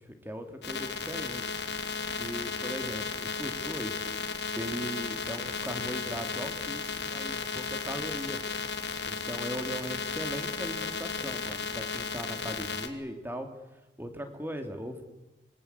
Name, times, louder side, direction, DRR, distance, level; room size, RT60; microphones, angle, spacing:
voice 1, 0.0-1.5 2.2-4.0 4.6-8.4 9.0-13.5 14.0-15.1, equal, 10° right, 6 dB, 2.8 m, -39 dB
sound 1, 0.6-12.9, left 5 dB, 80° left, 2.6 m, -34 dB
26.5 x 21.5 x 8.3 m, 1.0 s
head